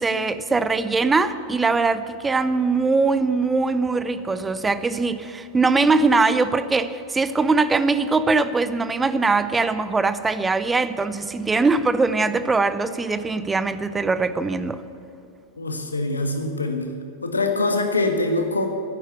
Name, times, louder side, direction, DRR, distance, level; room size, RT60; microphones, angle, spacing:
voice 1, 0.0-14.8, right 3 dB, 15° right, 13 dB, 0.6 m, -21 dB
voice 2, 15.6-16.9 17.2-18.7, left 2 dB, 80° left, 5 dB, 1.4 m, -23 dB
11.0 x 9.7 x 8.1 m, 2.5 s
figure-of-eight pair, 90°, 0 cm